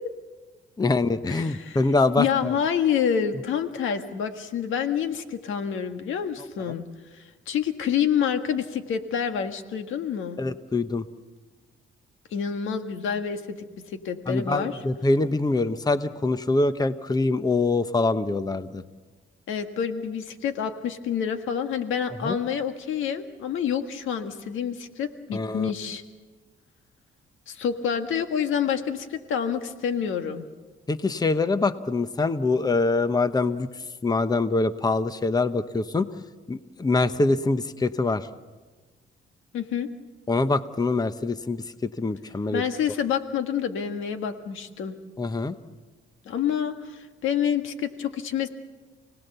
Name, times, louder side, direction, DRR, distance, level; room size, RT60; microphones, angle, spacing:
voice 1, 0.8-2.5 6.7-6.8 10.4-11.0 14.3-18.8 22.2-22.4 25.3-25.7 30.9-33.7 34.0-36.1 36.5-38.3 40.3-42.6 45.2-45.6, left 3 dB, 20° left, 11 dB, 1.0 m, -24 dB
voice 2, 1.3-1.8 2.2-6.9 7.5-10.4 12.3-13.6 13.9-14.8 19.5-26.0 27.5-30.4 39.5-39.9 42.5-44.9 46.2-48.5, left 8 dB, 80° left, 7 dB, 1.8 m, -27 dB
29.0 x 19.0 x 6.9 m, 1.3 s
cardioid pair, 90°, 20 cm